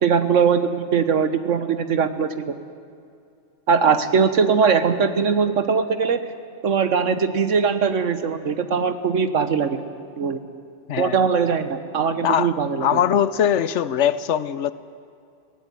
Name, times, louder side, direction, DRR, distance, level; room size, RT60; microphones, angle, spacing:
voice 1, 0.0-2.5 3.7-6.2 6.6-9.8 10.2-10.4 11.0-13.0, right 6 dB, 80° right, 10 dB, 1.5 m, -21 dB
voice 2, 12.2-12.6 12.8-14.7, left 9 dB, 75° left, 15 dB, 1.1 m, -21 dB
22.0 x 16.5 x 9.3 m, 2.5 s
omnidirectional pair, 1.3 m